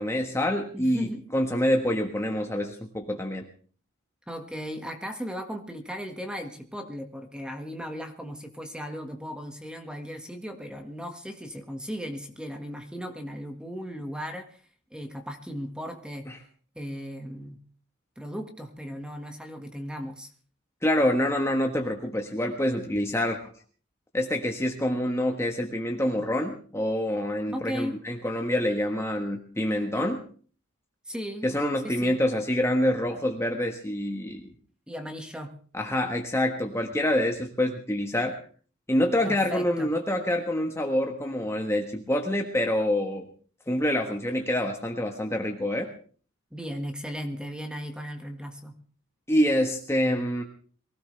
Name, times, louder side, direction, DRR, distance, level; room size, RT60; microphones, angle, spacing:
voice 1, 0.0-3.4 16.3-16.4 20.8-23.4 24.1-30.2 31.4-34.5 35.7-38.4 38.9-43.3 43.7-45.9 49.3-50.4, left 1 dB, 15° left, 2 dB, 1.4 m, -26 dB
voice 2, 0.7-1.2 4.3-14.6 14.9-16.3 16.7-17.6 18.2-20.3 27.5-27.9 31.0-31.5 31.8-32.2 34.9-35.5 39.2-39.9 46.5-48.8, equal, 5° right, 5 dB, 1.7 m, -36 dB
23.0 x 17.0 x 3.4 m, 0.43 s
head